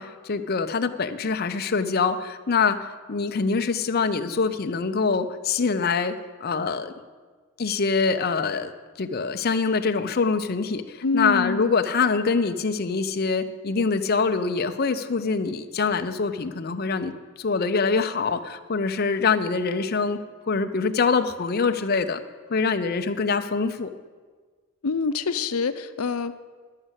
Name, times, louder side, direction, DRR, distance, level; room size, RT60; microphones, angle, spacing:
voice 1, 0.0-6.1 6.4-6.9 7.6-17.1 17.4-20.2 20.4-22.2 22.5-23.9, left 4 dB, 45° left, 8 dB, 0.5 m, -24 dB
voice 2, 11.0-11.6 24.8-26.4, left 4 dB, 80° left, 12 dB, 0.6 m, -26 dB
11.5 x 6.5 x 8.0 m, 1.5 s
head